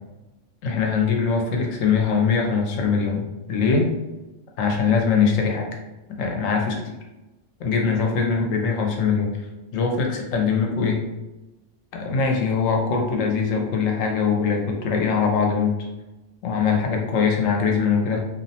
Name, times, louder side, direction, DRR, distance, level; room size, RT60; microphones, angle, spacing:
voice 1, 0.6-3.9 4.6-5.7 6.2-6.8 7.6-9.3 9.7-11.0 11.9-15.8 16.4-18.2, left 5 dB, 80° left, 1 dB, 1.0 m, -22 dB
2.6 x 2.1 x 2.7 m, 1.0 s
omnidirectional pair, 1.3 m